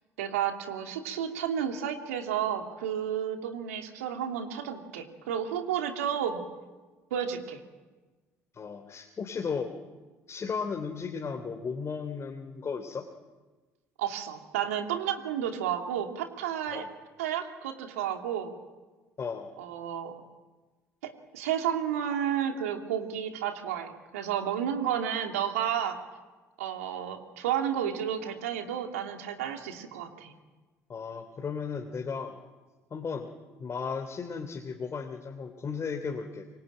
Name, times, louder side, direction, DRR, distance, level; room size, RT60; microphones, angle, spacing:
voice 1, 0.2-6.4 7.1-7.6 14.0-16.9 17.2-18.5 19.6-20.1 21.0-26.0 26.6-30.3, right 9 dB, 80° right, 5 dB, 2.6 m, -31 dB
voice 2, 8.5-9.7 10.3-13.1 16.7-16.9 19.2-19.5 30.9-32.4 32.9-33.3 33.6-36.5, left 5 dB, 40° left, 4 dB, 2.9 m, -35 dB
25.5 x 24.0 x 9.0 m, 1.3 s
hypercardioid pair, 60°, 8 cm